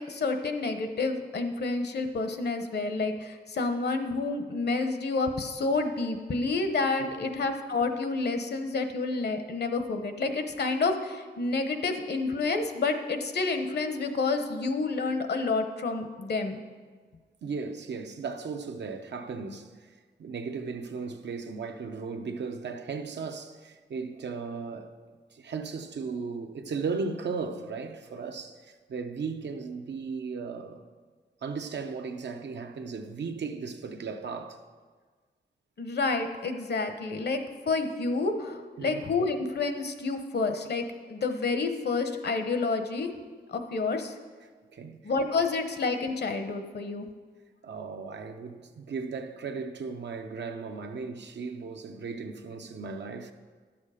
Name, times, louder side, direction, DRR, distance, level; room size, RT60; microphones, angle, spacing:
voice 1, 0.0-16.6 35.8-37.4 37.7-43.1 43.5-44.1 45.0-47.1, left 3 dB, 70° left, 0.9 m, -29 dB
voice 2, 7.0-7.3 17.4-19.9 20.2-24.9 25.3-30.8 31.4-34.6 38.8-39.0 44.7-45.0 47.6-53.3, right 5 dB, 90° right, 0.7 m, -36 dB
12.0 x 7.2 x 4.9 m
wide cardioid pair, 115°, 18 cm